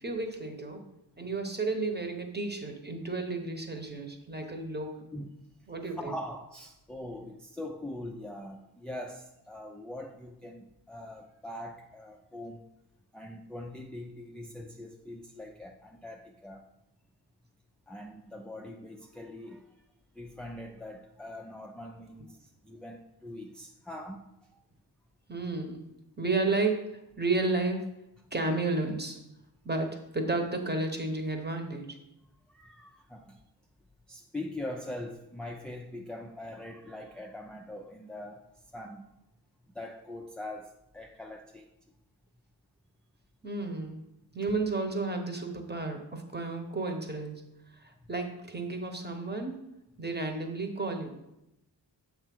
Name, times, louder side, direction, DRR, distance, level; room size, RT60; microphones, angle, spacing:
voice 1, 0.0-0.8 1.2-5.1 5.7-6.1 25.3-25.8 26.2-26.8 27.2-27.8 28.3-29.2 29.6-32.0 43.4-44.0 44.3-47.3 47.8-49.6 50.0-51.2, right 3 dB, 25° right, 4 dB, 1.1 m, -32 dB
voice 2, 5.9-12.6 13.1-16.6 17.9-19.7 20.2-24.2 32.5-33.4 34.1-38.5 38.7-39.0 39.7-41.7, left 1 dB, ahead, 2 dB, 0.5 m, -42 dB
7.6 x 3.6 x 6.0 m, 0.88 s
wide cardioid pair, 90°, 44 cm